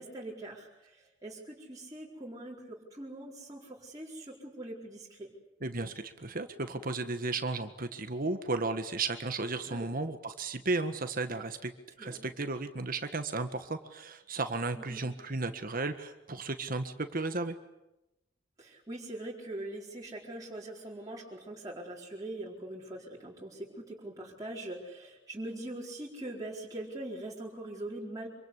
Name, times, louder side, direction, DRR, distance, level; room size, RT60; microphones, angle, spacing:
voice 1, 0.0-5.3 9.7-9.9 12.0-12.2 14.8-15.0 18.6-28.3, right 1 dB, 20° right, -5 dB, 4.4 m, -42 dB
voice 2, 5.6-11.7 12.0-17.6, right 3 dB, 50° right, 8 dB, 1.6 m, -34 dB
26.5 x 25.0 x 8.3 m, 0.92 s
head